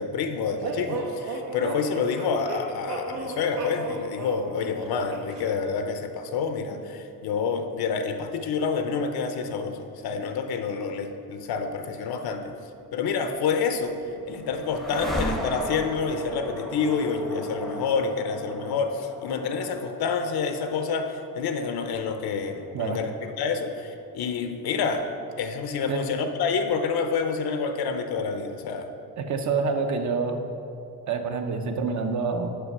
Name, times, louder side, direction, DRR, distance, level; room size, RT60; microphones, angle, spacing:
voice 1, 0.0-12.5 12.9-14.0 14.3-25.1 25.4-28.9, left 5 dB, 85° left, 7 dB, 0.7 m, -28 dB
sound 1, 0.6-5.4, right 3 dB, 80° right, 1.1 m, -34 dB
sound 2, 13.7-23.6, left 1 dB, ahead, 0.6 m, -36 dB
voice 2, 29.2-30.4 31.1-32.6, right 4 dB, 50° right, 6 dB, 0.8 m, -27 dB
6.7 x 5.2 x 6.0 m, 2.6 s
cardioid pair, 150°, 36 cm